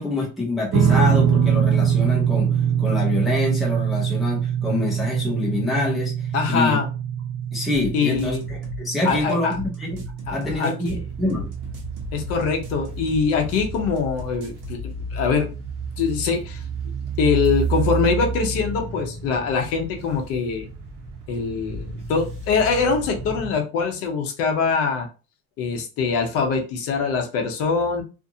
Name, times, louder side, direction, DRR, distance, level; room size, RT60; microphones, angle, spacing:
voice 1, 0.0-6.1 6.5-6.8 7.5-10.1 10.3-11.5, left 2 dB, ahead, -3 dB, 0.5 m, -26 dB
sound 1, 0.7-13.2, right 8 dB, 55° right, 0.4 m, -24 dB
voice 2, 6.3-6.9 7.9-8.4 9.0-9.6 10.3-11.0 12.1-15.5 16.0-16.6 17.2-20.7 21.3-25.1 25.6-28.0, left 5 dB, 50° left, 4 dB, 0.6 m, -23 dB
sound 2, 7.7-14.8, left 3 dB, 70° right, 1.0 m, -37 dB
sound 3, 10.9-23.6, right 5 dB, 35° right, 0.9 m, -31 dB
2.5 x 2.5 x 2.6 m, 0.32 s
cardioid pair, 175°, 32 cm